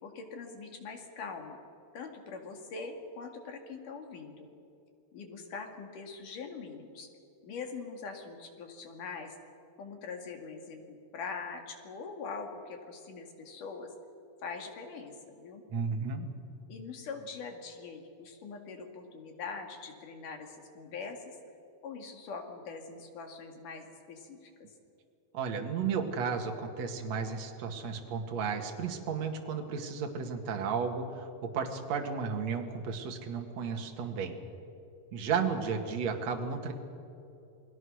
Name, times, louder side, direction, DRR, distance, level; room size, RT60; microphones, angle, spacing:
voice 1, 0.0-1.6 1.9-4.5 5.1-7.1 7.4-9.4 9.8-13.9 14.4-15.6 16.7-21.4 21.8-24.5, left 4 dB, 60° left, 4 dB, 3.6 m, -43 dB
voice 2, 15.7-16.3 25.3-34.4 35.1-36.7, right 5 dB, 50° right, 4 dB, 2.7 m, -33 dB
29.0 x 20.5 x 6.4 m, 2.7 s
omnidirectional pair, 4.5 m